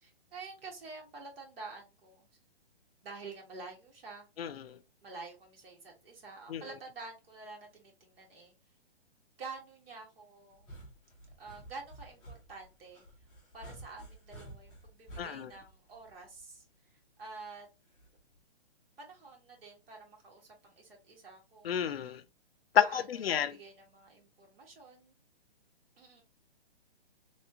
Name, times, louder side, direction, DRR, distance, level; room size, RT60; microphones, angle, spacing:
voice 1, 0.0-2.3 3.0-4.3 5.0-8.5 9.4-10.7 11.4-13.0 13.5-16.6 17.2-17.7 19.0-21.9 22.8-23.0 23.3-25.1 26.0-26.2, right 4 dB, 65° right, 1.5 m, -48 dB
voice 2, 4.4-4.8 6.5-6.6 15.2-15.5 21.6-22.2 22.7-23.6, left 9 dB, 65° left, 0.5 m, -30 dB
sound 1, 10.5-16.6 18.0-18.4, right 1 dB, 5° left, 0.5 m, -51 dB
3.2 x 2.6 x 2.7 m
hypercardioid pair, 160°, 32 cm